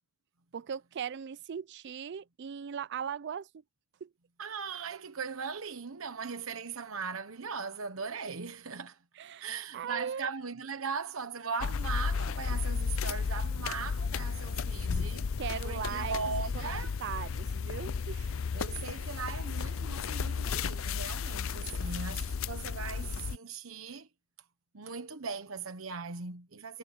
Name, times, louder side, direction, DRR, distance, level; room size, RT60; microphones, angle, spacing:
voice 1, 0.5-3.5 4.0-4.1 9.2-10.3 15.4-16.2 16.5-18.4 21.8-22.0, right 7 dB, 60° right, 0.4 m, -39 dB
voice 2, 4.4-9.0 9.4-15.3 15.6-16.9 18.5-24.1 24.7-26.8, right 5 dB, 80° right, 1.1 m, -39 dB
sound 1, 11.6-23.4, left 5 dB, 70° left, 0.5 m, -33 dB
head